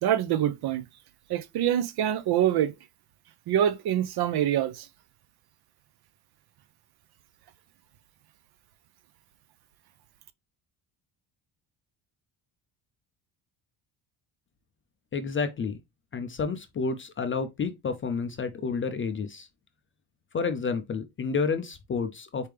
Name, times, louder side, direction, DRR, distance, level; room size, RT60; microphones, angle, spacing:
voice 1, 0.0-0.8 1.3-2.7 3.5-4.9, right 10 dB, 55° right, 0.6 m, -25 dB
voice 2, 15.1-15.8 16.1-19.5 20.3-22.5, left 5 dB, 30° left, 0.4 m, -30 dB
4.5 x 3.3 x 3.3 m
cardioid pair, 150°, 46 cm